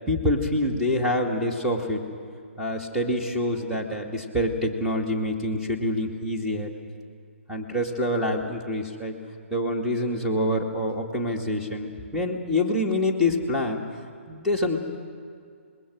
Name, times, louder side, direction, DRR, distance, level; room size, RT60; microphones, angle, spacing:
voice 1, 0.1-2.0 2.6-6.7 7.5-9.1 9.5-13.8 14.3-14.8, left 1 dB, 5° right, -1 dB, 2.2 m, -26 dB
26.0 x 21.0 x 6.3 m, 2.2 s
figure-of-eight pair, 135°, 7 cm